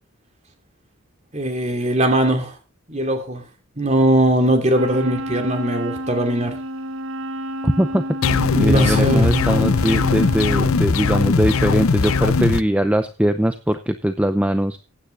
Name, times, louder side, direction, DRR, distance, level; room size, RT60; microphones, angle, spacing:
voice 1, 1.3-2.5 2.9-3.4 3.8-6.6 8.5-9.5, right 1 dB, 30° right, 5 dB, 2.8 m, -20 dB
Wind instrument woodwind instrument, 4.7-10.9, equal, 65° right, 1.3 m, -30 dB
voice 2, 7.6-8.0 8.3-14.8, equal, 5° right, 9 dB, 0.6 m, -21 dB
sound 1, 8.2-12.6, left 4 dB, 80° left, 0.7 m, -19 dB
15.5 x 9.7 x 3.9 m, 0.29 s
head